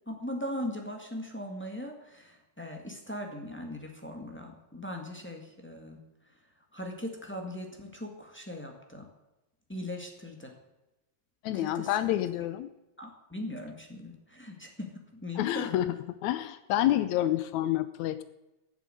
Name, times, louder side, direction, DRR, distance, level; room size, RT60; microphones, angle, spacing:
voice 1, 0.1-6.0 6.7-9.1 9.7-10.5 11.5-11.9 13.0-15.7, left 1 dB, 15° left, 2 dB, 0.4 m, -39 dB
voice 2, 11.4-12.7 15.3-16.0 16.2-18.2, left 13 dB, 90° left, 13 dB, 1.6 m, -28 dB
16.0 x 7.6 x 9.1 m, 1.0 s
omnidirectional pair, 4.1 m